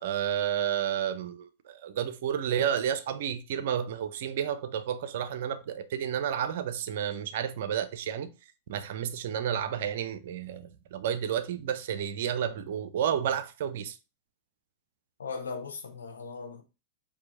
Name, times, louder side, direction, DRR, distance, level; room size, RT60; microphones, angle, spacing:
voice 1, 0.0-8.3 8.7-14.0, right 9 dB, 55° right, 0.5 m, -31 dB
voice 2, 15.2-16.6, left 4 dB, 70° left, 0.9 m, -38 dB
4.5 x 2.7 x 4.2 m
figure-of-eight pair, 90°, 0 cm